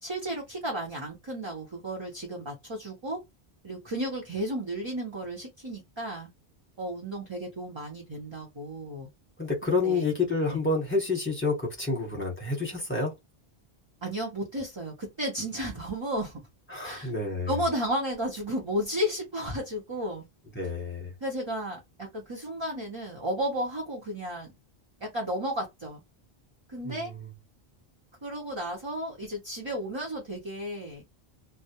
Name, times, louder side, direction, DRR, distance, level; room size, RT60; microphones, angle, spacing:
voice 1, 0.0-3.2 3.6-6.3 6.8-9.1 9.8-10.1 10.5-10.6 14.0-16.4 16.8-17.1 17.5-20.3 21.2-24.5 25.0-26.0 26.7-27.1 28.2-31.0, equal, 30° right, 0.6 m, -33 dB
voice 2, 9.4-13.1 16.7-17.5 20.5-21.1 26.8-27.2, left 3 dB, 10° left, 1.0 m, -29 dB
2.2 x 2.0 x 2.8 m
omnidirectional pair, 1.1 m